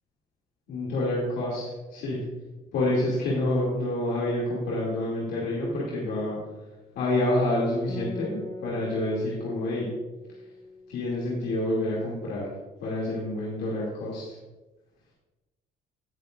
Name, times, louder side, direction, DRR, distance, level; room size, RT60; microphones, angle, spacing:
voice 1, 0.7-1.6 1.9-2.2 2.7-6.4 7.0-9.9 10.9-12.5 12.8-14.2, left 1 dB, 75° left, -5 dB, 2.6 m, -28 dB
Acoustic guitar, 7.9-11.6, left 2 dB, 25° left, 2.6 m, -41 dB
17.0 x 7.3 x 2.5 m, 1.1 s
cardioid pair, 110°, 17 cm